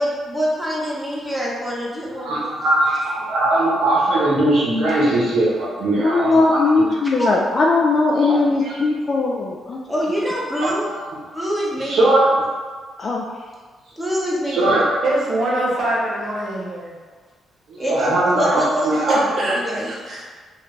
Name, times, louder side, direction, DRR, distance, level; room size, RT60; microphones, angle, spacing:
voice 1, 0.0-2.4 7.2-7.3 9.9-10.9 11.3-12.2 14.0-14.8 17.8-17.9 18.3-19.2 19.4-19.9, equal, 5° right, -6 dB, 0.9 m, -25 dB
voice 2, 2.1-6.6 8.2-8.7 10.6-11.1 11.8-12.5 14.5-15.1 17.7-19.2, right 1 dB, 80° right, -6 dB, 1.1 m, -20 dB
voice 3, 6.0-9.8 13.0-13.2, left 3 dB, 50° left, -2 dB, 0.3 m, -18 dB
voice 4, 15.0-17.0 19.1-20.2, right 1 dB, 60° right, -5 dB, 0.9 m, -24 dB
3.3 x 2.4 x 3.2 m, 1.5 s
cardioid pair, 80°, 0 cm